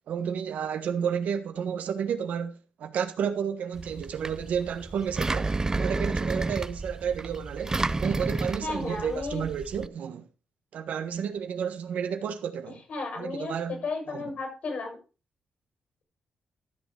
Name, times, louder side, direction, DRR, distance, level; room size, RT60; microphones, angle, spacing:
voice 1, 0.1-10.3 10.7-12.8 13.2-13.8 14.1-14.2, right 7 dB, 75° right, 1.4 m, -31 dB
Engine, 3.8-9.9, right 3 dB, 25° right, 0.6 m, -31 dB
voice 2, 8.6-9.4 12.9-15.0, left 3 dB, 65° left, 6.9 m, -33 dB
14.0 x 6.5 x 4.9 m
supercardioid pair, 65°, 3 cm